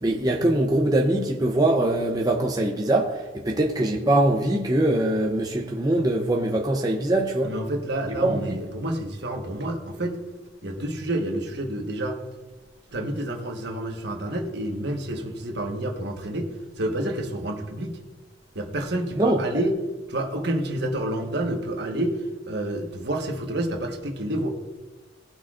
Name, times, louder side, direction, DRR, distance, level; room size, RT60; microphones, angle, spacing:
voice 1, 0.0-7.5 8.2-8.6 19.2-19.4, right 1 dB, 20° right, 1 dB, 0.6 m, -22 dB
voice 2, 7.4-10.2 10.6-12.2 12.9-16.5 16.8-18.0 18.5-19.8 20.1-22.2 22.5-24.5, right 1 dB, 60° right, 3 dB, 1.3 m, -29 dB
18.0 x 6.1 x 2.5 m, 1.2 s
head